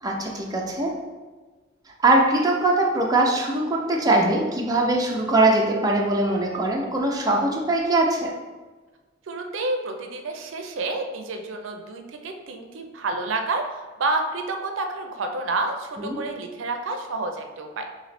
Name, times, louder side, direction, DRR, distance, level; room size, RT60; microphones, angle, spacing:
voice 1, 0.0-1.0 2.0-8.3 16.0-16.2, right 2 dB, 20° right, -1 dB, 0.5 m, -21 dB
voice 2, 9.3-17.8, right 2 dB, 90° right, 4 dB, 0.5 m, -29 dB
3.1 x 2.9 x 4.1 m, 1.3 s
head